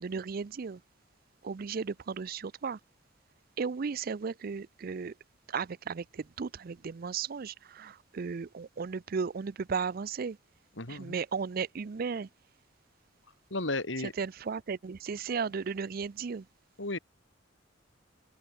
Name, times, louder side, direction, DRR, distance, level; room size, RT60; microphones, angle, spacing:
voice 1, 0.0-0.8 1.4-2.8 3.6-5.1 5.5-10.4 10.9-12.3 14.2-16.5, right 5 dB, 50° right, 0.5 m, -35 dB
voice 2, 10.8-11.2 13.5-14.1 16.8-17.0, left 2 dB, 75° left, 3.4 m, -34 dB
open air
head